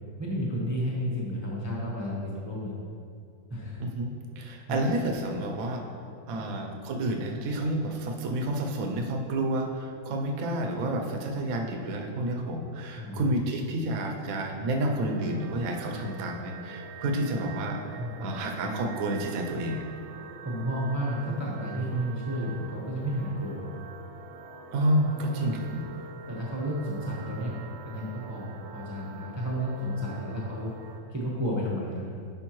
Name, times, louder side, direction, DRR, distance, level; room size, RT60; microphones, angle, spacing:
voice 1, 0.2-2.8 3.5-3.8 4.4-4.8 6.3-6.4 12.9-13.2 17.9-18.3 20.4-23.6 25.1-25.6 26.3-27.6 27.8-30.7 31.1-32.1, equal, 15° right, -5 dB, 0.6 m, -32 dB
voice 2, 3.8-5.8 6.3-19.8 24.7-25.9, right 1 dB, 60° right, 3 dB, 1.0 m, -30 dB
sound 1, 14.8-31.0, right 4 dB, 90° right, 1.5 m, -45 dB
10.5 x 5.3 x 3.1 m, 2.4 s
omnidirectional pair, 2.1 m